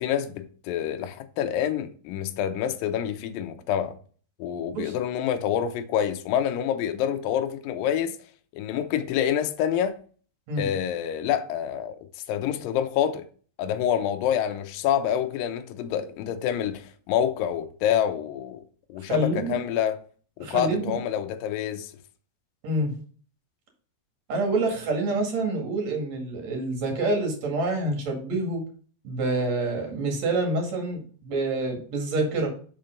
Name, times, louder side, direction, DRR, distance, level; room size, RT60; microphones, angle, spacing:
voice 1, 0.0-4.0 4.4-8.2 8.5-10.0 10.6-13.3 13.6-18.6 18.9-20.0 20.4-21.9, left 9 dB, 80° left, 2.1 m, -27 dB
voice 2, 19.1-19.6 20.4-20.9 22.6-22.9 24.3-28.6 29.0-32.5, right 2 dB, 50° right, 2.9 m, -27 dB
6.0 x 5.7 x 5.2 m
omnidirectional pair, 4.7 m